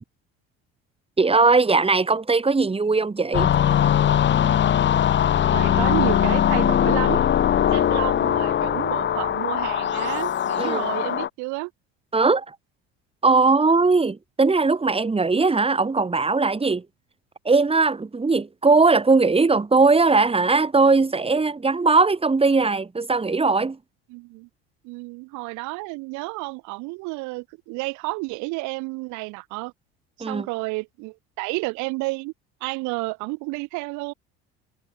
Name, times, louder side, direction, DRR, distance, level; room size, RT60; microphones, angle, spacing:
voice 1, 1.2-3.5 10.6-10.8 12.1-12.6 13.2-16.9 17.5-23.8 30.2-30.5, right 4 dB, 20° right, 7.0 m, -19 dB
sound 1, 3.3-11.3, left 9 dB, 40° left, 1.4 m, -21 dB
voice 2, 5.5-7.2 7.7-11.7 24.1-24.5 24.8-29.7 30.2-32.3 32.6-34.1, right 26 dB, 75° right, 4.7 m, -31 dB
supercardioid pair, 100°, 29 cm